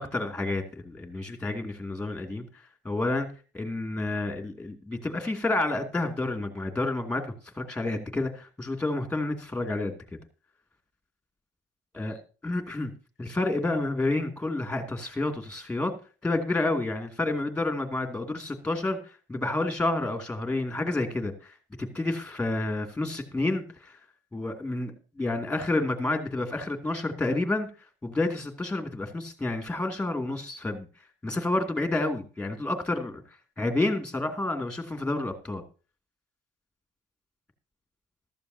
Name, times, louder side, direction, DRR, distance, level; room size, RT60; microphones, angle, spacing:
voice 1, 0.0-2.4 2.8-3.3 3.5-7.3 7.5-10.2 11.9-12.2 12.4-12.9 13.2-15.9 16.2-19.0 19.3-24.0 24.3-27.7 28.0-30.9 31.2-33.2 33.6-35.6, left 2 dB, 5° left, 5 dB, 2.5 m, -29 dB
14.5 x 13.0 x 2.8 m, 0.34 s
cardioid pair, 110°, 17 cm